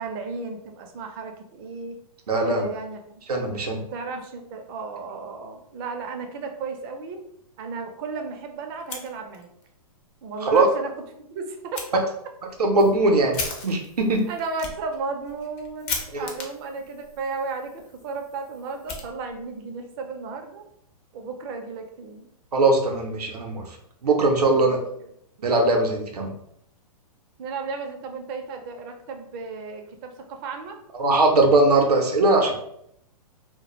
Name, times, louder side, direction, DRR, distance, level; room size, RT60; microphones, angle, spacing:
voice 1, 0.0-2.0 2.4-3.0 3.9-7.2 7.6-9.5 10.2-10.9 11.3-12.0 14.3-20.7 21.1-22.3 24.5-25.1 27.4-30.8, right 4 dB, 40° right, 4 dB, 0.5 m, -34 dB
voice 2, 2.3-2.6 3.3-3.8 10.4-10.7 12.6-14.3 16.1-16.3 22.5-23.6 24.0-24.8 25.4-26.3 31.0-32.5, right 2 dB, 85° right, 2 dB, 0.6 m, -20 dB
Fire, 8.7-9.7 10.0-10.1 10.5-10.6 11.7-11.9 12.5-19.6, left 4 dB, 30° left, 0.5 m, -38 dB
2.1 x 2.1 x 2.9 m, 0.74 s
hypercardioid pair, 120°, 20 cm